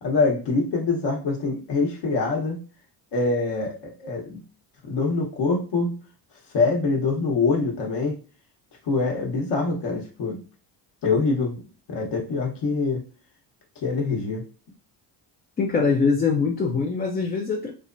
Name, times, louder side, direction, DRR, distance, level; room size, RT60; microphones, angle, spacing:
voice 1, 0.0-2.6 3.1-4.4 4.8-5.9 6.5-8.2 8.9-10.4 11.0-13.0 13.8-14.4, left 3 dB, 55° left, 1.0 m, -24 dB
voice 2, 15.6-17.7, left 5 dB, 20° left, 0.4 m, -23 dB
3.2 x 2.1 x 2.5 m
supercardioid pair, 75°, 49 cm